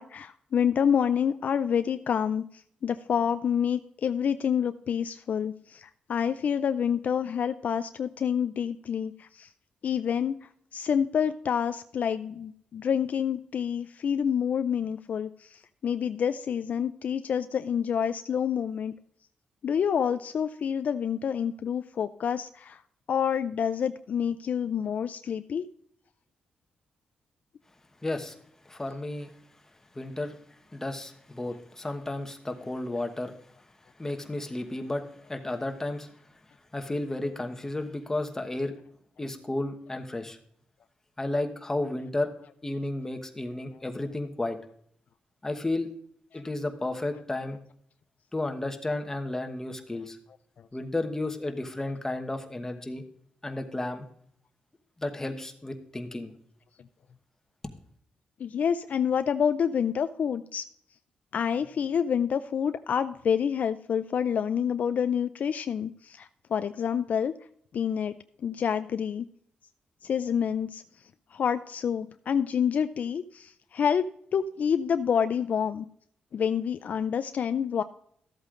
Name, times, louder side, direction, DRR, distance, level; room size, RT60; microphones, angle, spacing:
voice 1, 0.0-9.5 9.8-18.9 19.6-22.8 23.1-25.7 46.3-46.4 58.4-60.6 61.3-67.3 67.7-68.1 68.4-69.3 70.0-70.8 71.3-75.9 76.3-77.8, left 8 dB, 60° left, 11 dB, 0.4 m, -28 dB
voice 2, 28.0-28.3 28.6-29.3 29.9-30.4 30.7-33.4 34.0-36.1 36.7-38.7 39.2-40.4 41.2-42.3 42.6-44.6 45.4-45.9 46.3-47.6 48.3-50.2 50.7-53.0 53.4-54.1 55.0-56.3, left 2 dB, 15° left, 5 dB, 1.1 m, -32 dB
13.5 x 8.1 x 2.5 m, 0.65 s
cardioid pair, 95°, 3 cm